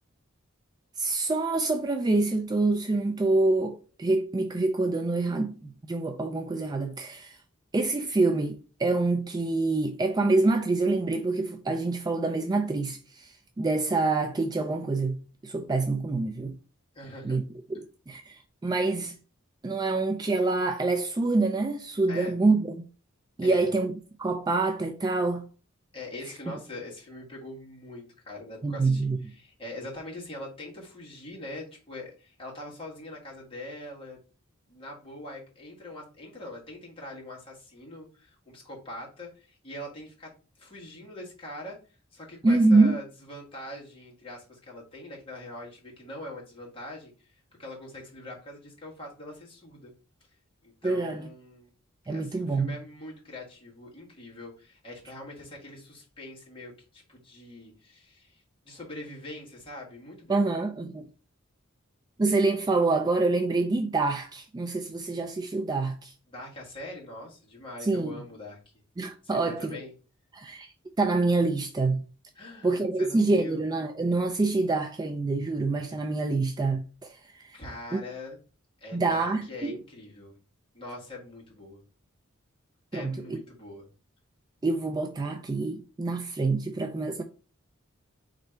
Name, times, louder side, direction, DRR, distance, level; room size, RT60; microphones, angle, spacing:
voice 1, 1.0-7.4 7.7-16.6 17.2-17.4 17.8-19.2 19.6-22.8 23.4-23.9 24.2-25.4 28.6-29.2 42.4-43.0 50.8-51.3 52.1-52.8 60.3-61.1 62.2-66.1 67.8-68.2 69.0-69.8 70.3-70.7 71.0-72.0 72.6-77.5 77.9-78.0 78.9-79.8 82.9-83.4 84.6-87.2, right 3 dB, 20° right, 0.3 m, -26 dB
voice 2, 16.9-17.4 22.1-22.3 23.4-23.7 25.9-34.2 34.7-40.3 40.6-41.8 42.1-49.9 50.6-51.7 52.1-60.4 66.3-68.6 69.2-69.9 72.3-73.6 77.5-78.4 78.8-80.3 80.7-81.8 82.9-83.9, left 1 dB, 25° left, 1.6 m, -43 dB
3.8 x 3.2 x 4.5 m
head